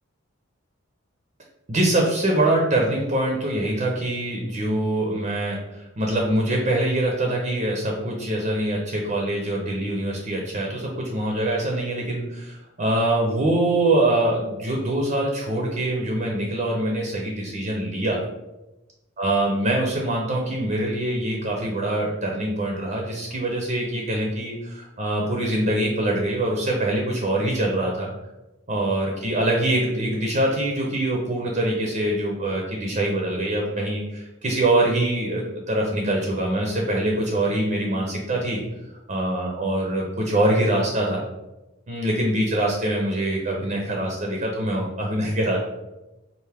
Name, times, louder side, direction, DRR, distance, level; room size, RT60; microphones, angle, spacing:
voice 1, 1.7-18.2 19.2-28.1 28.7-38.6 38.9-41.2 41.9-45.6, right 1 dB, 35° right, -1 dB, 0.6 m, -24 dB
4.7 x 2.5 x 3.4 m, 1.0 s
head